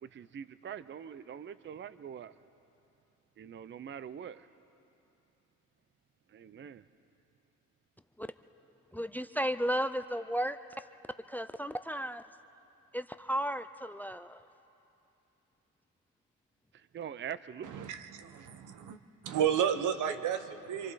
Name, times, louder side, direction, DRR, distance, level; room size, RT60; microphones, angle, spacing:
voice 1, 0.0-2.3 3.4-4.5 6.3-6.8 16.7-17.9, right 8 dB, 40° right, 15 dB, 0.6 m, -44 dB
voice 2, 8.9-10.6 11.3-12.2 12.9-14.5, equal, 5° left, 12 dB, 0.4 m, -34 dB
voice 3, 17.6-19.0 19.2-20.9, right 9 dB, 80° right, 9 dB, 1.1 m, -32 dB
26.0 x 23.5 x 4.2 m, 2.9 s
cardioid pair, 90°, 30 cm